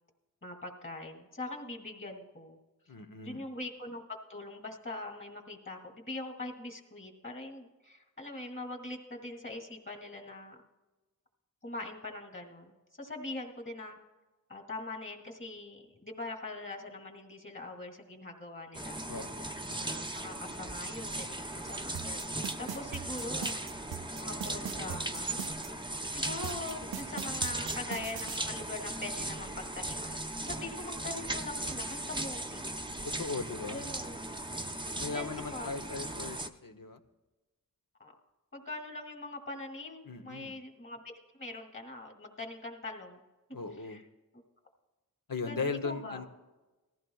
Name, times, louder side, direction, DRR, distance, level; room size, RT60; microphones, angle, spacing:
voice 1, 0.4-2.6 3.2-10.6 11.6-14.0 14.5-19.0 19.7-23.7 24.1-25.5 26.0-32.7 33.7-34.2 35.1-35.7 38.0-38.1 38.5-43.2 43.8-44.0 45.4-46.2, left 2 dB, 35° left, 2 dB, 2.5 m, -42 dB
voice 2, 2.9-3.5 19.1-19.5 33.0-33.8 35.0-37.0 40.0-40.5 43.5-44.0 45.3-46.3, left 4 dB, 70° left, 6 dB, 1.0 m, -38 dB
sound 1, 18.7-36.5, right 1 dB, 15° right, 0.7 m, -38 dB
sound 2, 21.9-25.7 26.4-28.4, right 9 dB, 85° right, 0.6 m, -40 dB
19.0 x 14.5 x 2.4 m, 1.1 s
wide cardioid pair, 45°, 35 cm